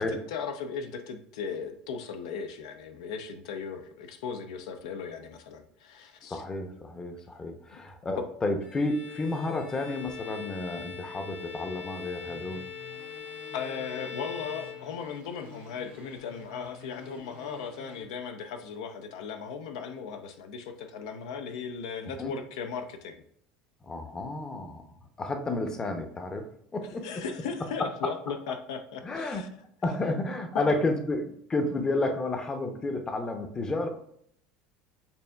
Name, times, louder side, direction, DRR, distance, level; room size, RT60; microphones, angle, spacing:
voice 1, 0.3-6.4 7.7-7.8 13.5-23.2 27.0-29.5 30.5-30.8, left 6 dB, 85° left, 7 dB, 0.5 m, -37 dB
voice 2, 6.3-12.6 22.2-22.3 23.8-24.8 25.2-26.4 26.7-27.2 27.8-28.1 29.0-29.5 29.8-33.9, left 2 dB, 20° left, 6 dB, 0.6 m, -31 dB
Bowed string instrument, 8.6-15.4, left 8 dB, 45° left, 0.9 m, -42 dB
sound 1, 12.2-18.0, left 2 dB, 85° right, 1.6 m, -51 dB
6.8 x 2.6 x 2.2 m, 0.69 s
supercardioid pair, 110°, 3 cm